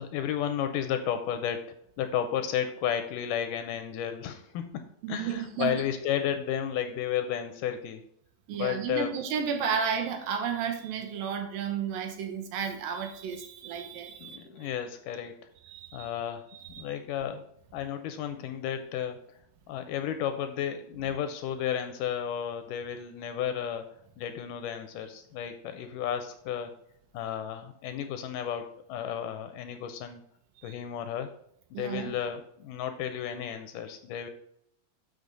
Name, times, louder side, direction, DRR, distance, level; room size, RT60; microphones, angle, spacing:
voice 1, 0.0-1.6 2.0-8.0 8.5-9.2 14.2-15.3 15.9-16.5 16.8-17.4 17.7-19.2 19.7-23.9 24.2-26.7 27.1-30.2 30.6-31.3 31.7-34.3, left 9 dB, 80° left, 8 dB, 2.1 m, -33 dB
voice 2, 5.0-5.8 8.5-14.7 15.6-16.1 16.5-16.9 30.6-30.7 31.7-32.1, right 7 dB, 90° right, 5 dB, 2.7 m, -33 dB
8.0 x 5.2 x 3.8 m, 0.71 s
omnidirectional pair, 4.0 m